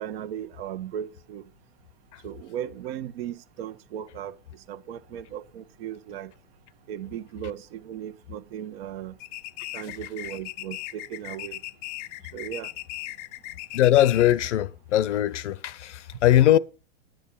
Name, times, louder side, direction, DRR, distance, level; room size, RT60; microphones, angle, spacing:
voice 1, 0.0-1.4 2.2-4.4 4.7-6.3 6.9-9.2 9.7-11.6 12.3-12.7, right 10 dB, 55° right, 1.1 m, -36 dB
sound 1, 9.2-14.5, left 17 dB, 35° left, 0.5 m, -38 dB
voice 2, 13.7-16.6, left 13 dB, 85° left, 0.8 m, -20 dB
10.5 x 9.3 x 5.5 m
supercardioid pair, 140°, 35 cm